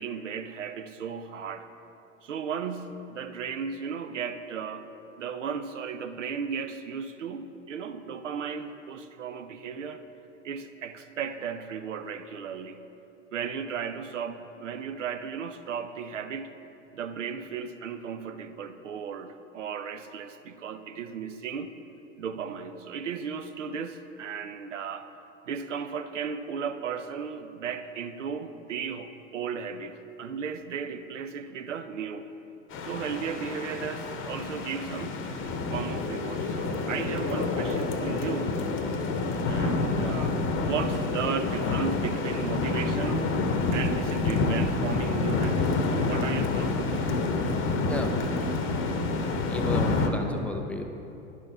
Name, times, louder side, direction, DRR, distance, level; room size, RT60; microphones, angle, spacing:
voice 1, 0.0-1.7 2.2-4.9 5.2-10.0 10.4-12.8 13.3-16.5 16.9-21.7 22.2-25.1 25.4-32.3 32.8-35.3 35.7-38.6 39.5-43.3 43.7-47.1, right 6 dB, 80° right, 10 dB, 0.6 m, -35 dB
sound 1, 32.7-50.1, left 3 dB, 35° left, 0.8 m, -28 dB
voice 2, 47.9-48.5 49.4-50.8, left 1 dB, 5° left, 3 dB, 0.3 m, -34 dB
10.5 x 6.1 x 3.4 m, 2.8 s
figure-of-eight pair, 85°, 37 cm